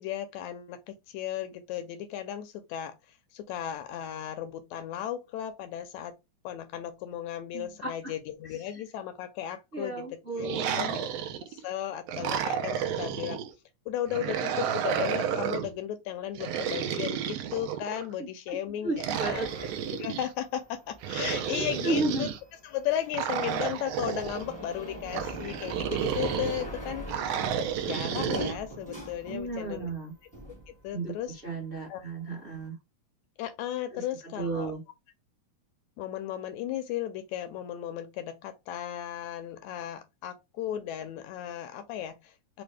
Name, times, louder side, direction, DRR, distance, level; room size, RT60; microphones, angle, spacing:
voice 1, 0.0-6.2 6.4-10.1 10.4-11.0 11.5-13.4 13.9-19.5 19.9-22.3 22.6-27.1 27.8-29.9 30.8-31.4 31.9-32.0 33.4-34.7 36.0-42.6, left 11 dB, 80° left, 1.7 m, -35 dB
voice 2, 7.5-8.1 8.4-8.8 9.7-11.0 18.2-19.5 21.5-22.3 29.3-30.1 30.9-32.7 33.9-34.0 34.4-34.8, right 2 dB, 45° right, 0.6 m, -34 dB
sound 1, 10.4-11.6 12.1-13.5 14.1-15.7 16.4-18.1 19.0-20.3 21.0-22.4 23.1-24.4 25.1-26.6 27.1-28.6, right 8 dB, 75° right, 1.5 m, -31 dB
sound 2, 19.3-29.9 30.2-31.5, equal, 10° left, 0.4 m, -42 dB
4.9 x 2.3 x 3.2 m
omnidirectional pair, 3.5 m